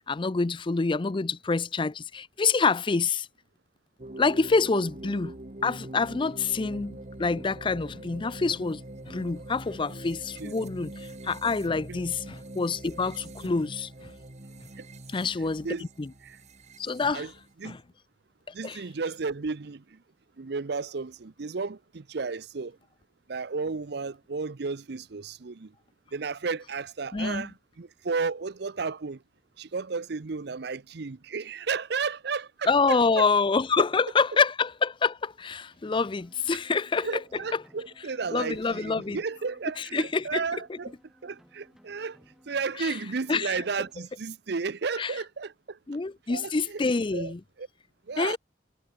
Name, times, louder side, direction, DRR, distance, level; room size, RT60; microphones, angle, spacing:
voice 1, 0.1-3.3 4.2-5.3 5.6-14.1 15.1-16.1 16.8-17.3 17.6-17.8 18.6-18.8 27.1-27.5 32.7-37.2 37.5-37.6 38.3-39.2 39.8-40.4 40.7-40.8 42.8-43.0 43.3-43.6 45.0-45.2 45.9-47.4 48.2-48.4, left 4 dB, 30° left, 0.5 m, -27 dB
sound 1, 4.0-17.5, right 1 dB, 40° right, 1.7 m, -43 dB
voice 2, 15.4-15.9 16.2-16.4 17.1-17.3 17.6-17.7 18.5-20.0 20.4-22.8 23.3-25.7 26.1-29.2 29.6-33.2 37.0-40.9 41.2-42.2 42.5-45.8 46.3-46.8 47.1-47.3 47.6-47.7 48.1-48.4, right 4 dB, 65° right, 0.7 m, -33 dB
sound 2, 36.0-44.0, equal, ahead, 3.6 m, -59 dB
head